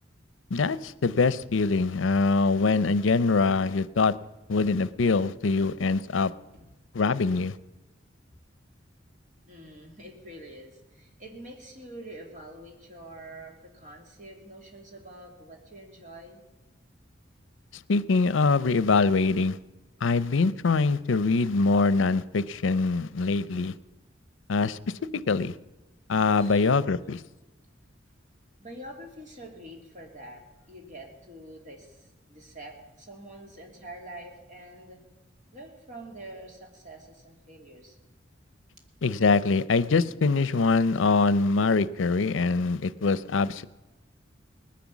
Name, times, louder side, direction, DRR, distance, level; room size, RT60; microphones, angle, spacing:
voice 1, 0.5-4.1 4.5-6.3 6.9-7.5 17.9-19.6 20.0-23.7 24.5-24.8 25.1-25.5 26.1-27.2 39.0-43.6, left 4 dB, 85° left, 17 dB, 0.6 m, -23 dB
voice 2, 9.5-16.4 26.3-26.7 28.6-35.0 35.5-38.0, right 1 dB, 40° right, 2 dB, 2.7 m, -46 dB
19.0 x 10.5 x 7.2 m, 1.1 s
head